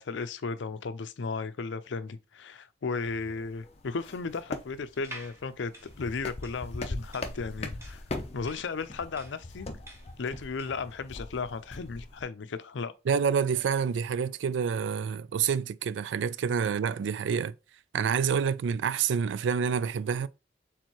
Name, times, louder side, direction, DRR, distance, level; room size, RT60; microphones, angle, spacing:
voice 1, 0.0-5.7 6.0-8.0 8.3-9.7 10.2-12.9, left 4 dB, 85° left, 0.5 m, -35 dB
sound 1, 3.0-12.2, left 2 dB, 35° left, 0.6 m, -41 dB
sound 2, 4.9-10.9, right 1 dB, 15° right, 0.9 m, -49 dB
voice 2, 13.1-17.5 17.9-20.3, right 6 dB, 85° right, 0.3 m, -28 dB
4.5 x 3.6 x 2.9 m
head